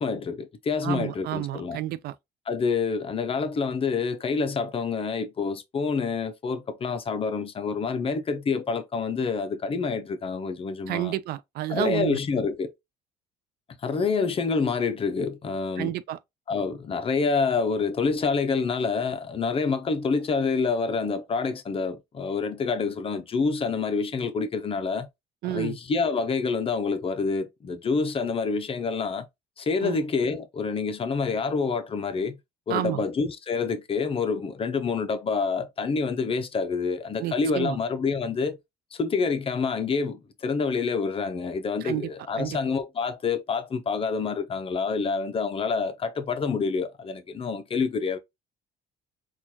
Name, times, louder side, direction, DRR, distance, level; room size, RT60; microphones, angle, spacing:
voice 1, 0.0-1.8 2.5-11.1 11.7-12.7 13.8-15.9 16.5-25.1 25.4-29.3 29.6-32.4 32.7-38.6 38.9-48.2, left 4 dB, 35° left, 0.6 m, -27 dB
voice 2, 0.8-2.1 10.9-12.2 15.8-16.2 25.4-25.8 29.8-30.0 32.7-33.0 37.2-37.8 41.8-42.1 42.4-42.6, right 14 dB, 70° right, 0.4 m, -30 dB
4.3 x 2.4 x 2.8 m
cardioid pair, 110°, 17 cm